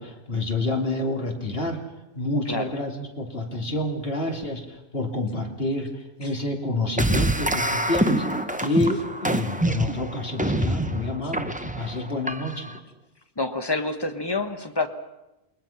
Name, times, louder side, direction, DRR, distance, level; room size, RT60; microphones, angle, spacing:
voice 1, 0.0-1.8 2.1-8.2 8.6-12.7, left 2 dB, 65° left, 1 dB, 3.2 m, -28 dB
sound 1, 7.0-12.8, right 1 dB, 10° right, 0.8 m, -26 dB
voice 2, 13.4-14.9, left 3 dB, 25° left, 8 dB, 1.4 m, -27 dB
28.5 x 21.5 x 5.9 m, 0.99 s
omnidirectional pair, 1.1 m